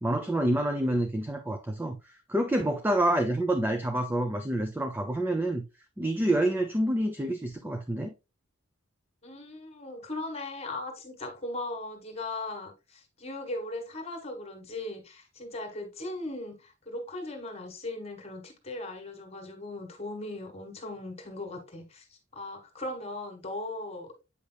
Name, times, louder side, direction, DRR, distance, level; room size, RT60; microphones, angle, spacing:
voice 1, 0.0-2.0 2.3-5.6 6.0-8.1, right 1 dB, 10° right, 0.5 m, -27 dB
voice 2, 9.2-24.1, left 2 dB, 30° left, 1.5 m, -38 dB
8.2 x 5.1 x 2.2 m
head